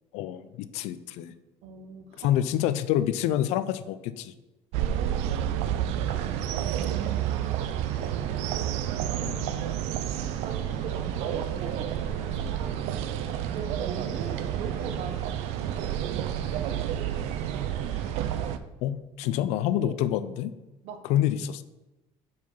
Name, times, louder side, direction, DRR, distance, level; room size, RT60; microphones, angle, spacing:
voice 1, 0.1-1.3 2.2-4.3 18.8-20.5 21.1-21.6, left 11 dB, 80° left, 14 dB, 0.4 m, -27 dB
voice 2, 1.6-2.3 2.9-3.0 4.8-6.0 6.3-7.5 9.1-13.1 13.4-15.2 15.5-17.2 19.8-20.0 20.8-21.2, right 5 dB, 65° right, 7 dB, 0.8 m, -42 dB
sound 1, 4.7-18.6, right 10 dB, 85° right, 0.4 m, -30 dB
sound 2, 6.1-18.5, left 3 dB, 30° left, 0.9 m, -50 dB
4.7 x 4.7 x 5.4 m, 1.0 s
cardioid pair, 150°, 11 cm